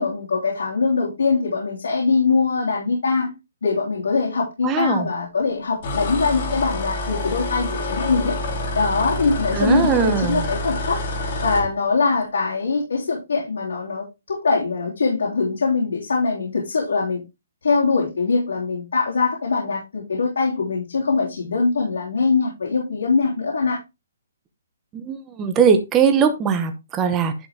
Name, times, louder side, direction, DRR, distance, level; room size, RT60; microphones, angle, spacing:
voice 1, 0.0-3.3 3.6-8.4 8.7-11.0 11.4-17.2 17.6-23.8, left 4 dB, 85° left, -3 dB, 3.2 m, -22 dB
voice 2, 4.6-5.1 9.5-10.4 24.9-27.3, right 6 dB, 10° right, 6 dB, 0.8 m, -20 dB
sound 1, 5.8-11.7, left 1 dB, 35° left, 2.3 m, -27 dB
11.0 x 4.9 x 3.6 m, 0.24 s
hypercardioid pair, 175°, 0 cm